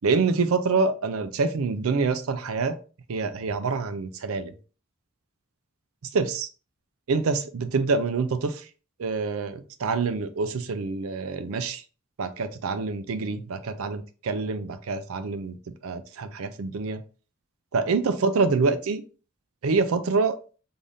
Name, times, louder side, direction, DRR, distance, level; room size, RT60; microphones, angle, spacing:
voice 1, 0.0-2.8 3.1-4.5 6.1-6.5 7.1-8.7 9.0-11.8 12.2-15.6 15.8-17.0 17.7-19.0 19.6-20.4, right 4 dB, 80° right, 11 dB, 0.5 m, -26 dB
3.9 x 3.4 x 2.5 m, 0.36 s
head